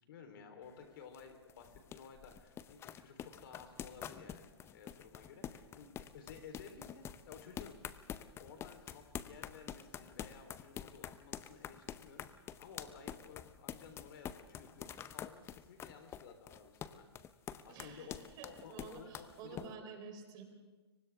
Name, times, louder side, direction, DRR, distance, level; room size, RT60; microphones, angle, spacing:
voice 1, 0.1-7.7 8.4-17.1 17.6-19.7, left 6 dB, 55° left, 6 dB, 3.8 m, -55 dB
sound 1, 0.6-19.7, left 9 dB, 20° left, 0.7 m, -47 dB
voice 2, 17.7-20.4, right 5 dB, 30° right, 4 dB, 4.0 m, -50 dB
30.0 x 24.0 x 3.6 m, 1.3 s
hypercardioid pair, 125°, 14 cm